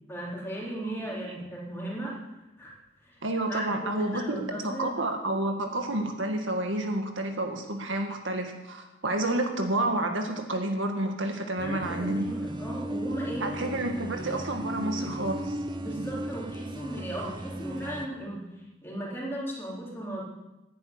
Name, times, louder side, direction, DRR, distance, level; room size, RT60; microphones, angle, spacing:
voice 1, 0.1-2.1 2.6-2.7 3.0-3.2 3.5-5.0 11.6-13.5 15.8-20.2, right 1 dB, 10° left, -5 dB, 3.8 m, -36 dB
voice 2, 3.2-12.3 13.4-15.6, right 1 dB, 85° right, 4 dB, 1.9 m, -30 dB
sound 1, 11.6-18.1, right 1 dB, 25° right, 0.8 m, -36 dB
10.5 x 8.9 x 9.6 m, 1.0 s
head